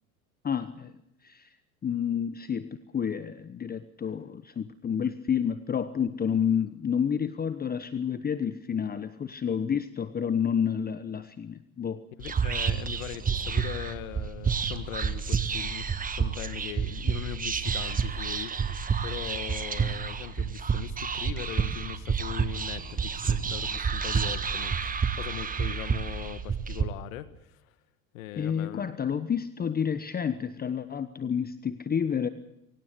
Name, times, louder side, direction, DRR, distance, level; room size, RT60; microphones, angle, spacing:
voice 1, 0.4-0.9 1.2-1.5 1.8-12.0 28.4-32.3, left 7 dB, 20° left, 13 dB, 1.1 m, -29 dB
voice 2, 12.2-18.5 19.0-27.7 28.1-28.9, left 14 dB, 65° left, 13 dB, 1.5 m, -40 dB
Whispering, 12.2-26.8, right 6 dB, 20° right, 1.6 m, -29 dB
24.5 x 17.0 x 8.2 m, 0.80 s
hypercardioid pair, 85°, 43 cm